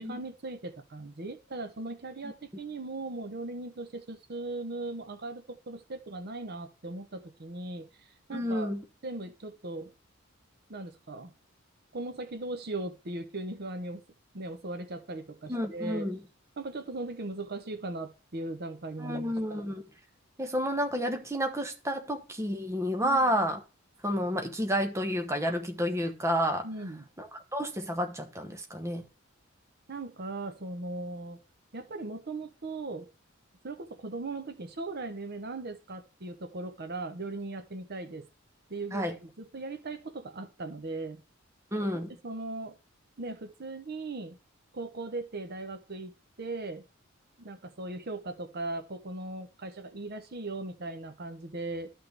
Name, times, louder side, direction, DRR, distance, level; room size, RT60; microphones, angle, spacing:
voice 1, 0.0-8.7 9.0-9.9 10.7-11.3 11.9-14.0 14.3-16.1 16.6-19.6 23.0-23.2 26.6-27.0 29.9-31.4 31.7-33.1 33.6-38.3 38.7-41.2 42.2-42.8 43.2-44.4 44.7-46.1 46.4-46.8 47.4-51.9, right 2 dB, 50° right, 0.8 m, -38 dB
voice 2, 8.3-8.8 15.5-16.2 19.0-19.8 20.4-23.6 24.0-26.7 27.2-29.0 38.9-39.2 41.7-42.1, equal, 15° right, 1.0 m, -30 dB
12.0 x 6.0 x 3.4 m
head